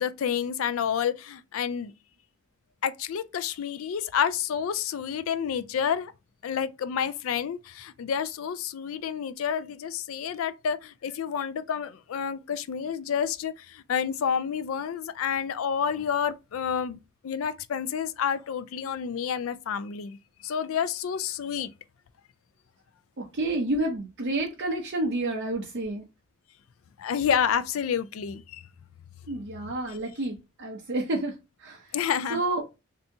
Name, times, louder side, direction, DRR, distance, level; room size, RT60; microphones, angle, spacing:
voice 1, 0.0-1.9 2.8-6.1 6.4-17.0 17.2-20.2 20.4-21.7 27.0-28.6 31.9-32.4, left 7 dB, 80° left, 0.4 m, -29 dB
voice 2, 23.2-26.0 29.3-32.0 32.3-32.6, right 2 dB, 55° right, 0.7 m, -30 dB
2.7 x 2.7 x 3.4 m
head